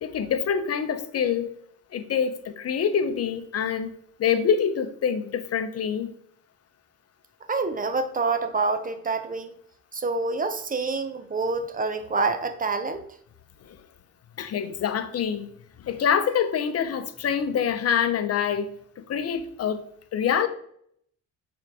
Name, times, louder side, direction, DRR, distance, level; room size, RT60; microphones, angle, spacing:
voice 1, 0.0-1.5 1.9-3.9 4.2-6.1 13.7-13.8 14.4-15.5 15.8-18.7 19.0-19.8 20.1-20.5, left 7 dB, 55° left, 10 dB, 0.7 m, -25 dB
voice 2, 7.5-9.5 9.9-13.1, right 3 dB, 30° right, 9 dB, 0.7 m, -27 dB
8.1 x 3.9 x 3.4 m, 0.68 s
cardioid pair, 90°, 30 cm